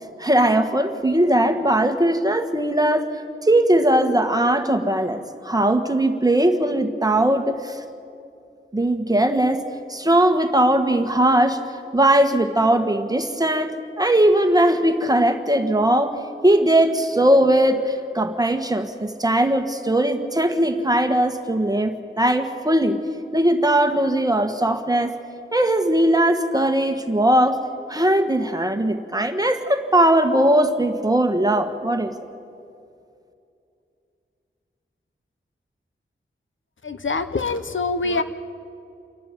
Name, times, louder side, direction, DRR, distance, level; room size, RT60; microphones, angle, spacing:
voice 1, 0.2-3.1 3.4-7.8 8.7-9.6 9.9-11.6 11.9-16.1 16.4-23.0 23.3-25.1 25.5-27.6 27.9-32.2, right 1 dB, 20° right, 6 dB, 1.5 m, -19 dB
voice 2, 36.8-38.2, left 3 dB, 70° left, 10 dB, 1.1 m, -24 dB
28.0 x 12.0 x 9.2 m, 2.5 s
wide cardioid pair, 85°, 20 cm